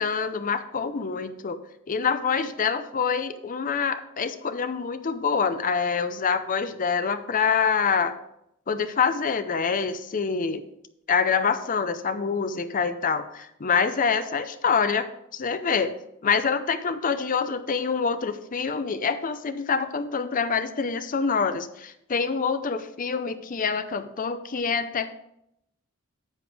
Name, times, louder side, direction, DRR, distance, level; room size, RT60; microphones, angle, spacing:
voice 1, 0.0-1.6 1.9-8.1 8.7-10.6 11.1-16.0 16.2-25.1, left 5 dB, 40° left, 11 dB, 0.6 m, -26 dB
9.9 x 6.8 x 3.4 m, 0.80 s
head